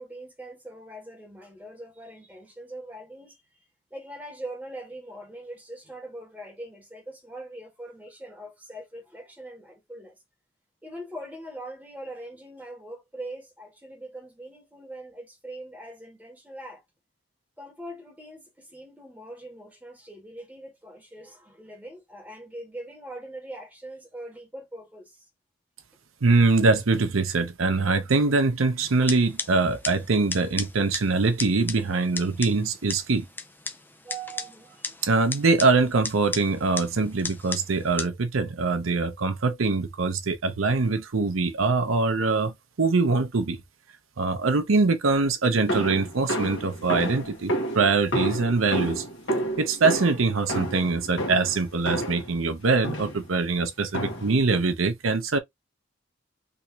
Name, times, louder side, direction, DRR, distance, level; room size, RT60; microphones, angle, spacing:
voice 1, 0.0-3.4 3.9-10.2 10.8-16.8 17.6-25.2 34.0-34.9, right 1 dB, 10° right, 1.6 m, -42 dB
voice 2, 26.2-33.3 35.0-42.5 42.8-43.6 44.2-49.0 49.6-55.4, right 3 dB, 85° right, 0.7 m, -23 dB
sound 1, 28.8-38.1, left 4 dB, 10° left, 0.4 m, -37 dB
sound 2, 45.7-52.3 52.8-53.3 53.9-54.4, right 1 dB, 65° left, 1.4 m, -30 dB
3.5 x 3.0 x 2.8 m
head